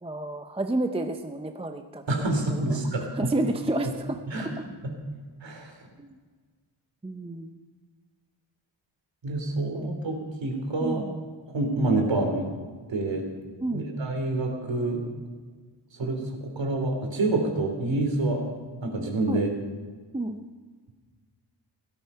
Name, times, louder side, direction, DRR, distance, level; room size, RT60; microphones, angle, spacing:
voice 1, 0.0-2.0 2.5-2.8 3.1-4.2 6.0-6.2 7.0-7.6 9.7-9.9 10.8-11.1 13.6-13.9 19.3-19.4 20.1-20.4, right 2 dB, 15° right, 6 dB, 0.6 m, -30 dB
voice 2, 2.1-3.0 4.3-4.5 5.4-5.7 9.2-11.0 11.5-12.5 12.9-15.0 16.0-18.4 18.8-19.5, right 2 dB, 70° right, 2 dB, 3.5 m, -27 dB
16.5 x 13.0 x 5.6 m, 1.5 s
wide cardioid pair, 160°, 46 cm